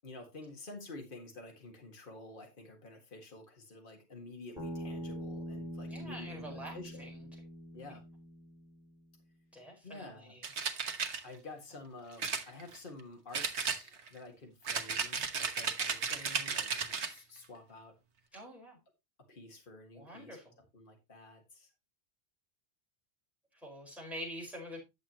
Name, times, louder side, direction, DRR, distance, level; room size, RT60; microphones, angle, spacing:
voice 1, 0.0-7.1 7.7-8.0 9.8-10.3 11.2-17.9 19.3-20.4 20.7-21.7, left 2 dB, 50° left, 3 dB, 2.0 m, -50 dB
Bass guitar, 4.6-8.8, equal, 30° right, 3.6 m, -43 dB
voice 2, 5.9-7.3 9.5-10.5 18.3-18.8 19.9-20.6 23.5-24.8, equal, ahead, -2 dB, 4.8 m, -46 dB
sound 1, 10.4-11.2 12.2-13.0 13.3-14.2 14.7-17.2, right 5 dB, 80° right, 1.3 m, -34 dB
10.5 x 7.3 x 2.9 m, 0.23 s
omnidirectional pair, 1.1 m